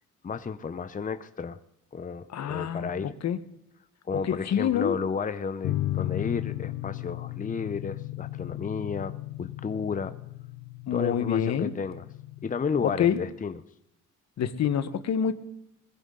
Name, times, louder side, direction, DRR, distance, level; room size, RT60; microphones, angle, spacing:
voice 1, 0.2-1.6 1.9-3.1 4.0-10.1 10.9-12.1 12.4-13.6, left 5 dB, 25° left, 11 dB, 0.8 m, -32 dB
voice 2, 2.3-2.9 3.2-3.4 4.1-5.0 10.9-11.7 12.8-13.2 14.4-15.3, left 8 dB, 65° left, 11 dB, 1.4 m, -26 dB
sound 1, 5.6-13.3, left 15 dB, 85° left, 0.9 m, -35 dB
21.0 x 15.5 x 3.9 m, 0.79 s
cardioid pair, 90°, 30 cm